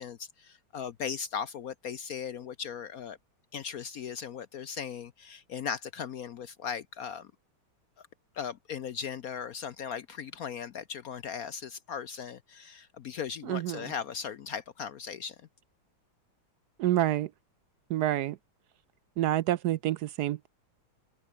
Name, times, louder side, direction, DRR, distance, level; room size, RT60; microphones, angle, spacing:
voice 1, 0.0-3.2 3.5-7.3 8.3-15.4, left 7 dB, 65° left, 0.9 m, -38 dB
voice 2, 13.5-13.8 16.8-17.3 17.9-18.4 19.2-20.5, right 13 dB, 75° right, 0.9 m, -28 dB
omnidirectional pair, 2.3 m